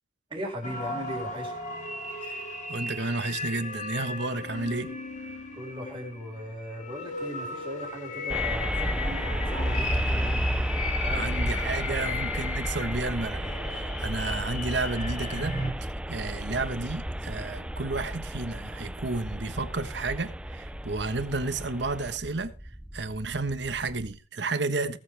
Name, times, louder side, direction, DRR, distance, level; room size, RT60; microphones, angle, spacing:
voice 1, 0.3-1.5 5.5-10.7 11.0-11.3 12.0-12.1, equal, 25° right, 5.0 m, -38 dB
sound 1, 0.6-15.7, left 2 dB, 40° left, 2.6 m, -34 dB
voice 2, 2.7-4.9 11.1-22.5 22.9-25.0, right 3 dB, 70° right, 1.3 m, -32 dB
sound 2, 8.3-24.2, right 1 dB, 5° right, 0.5 m, -34 dB
19.5 x 7.8 x 3.4 m
head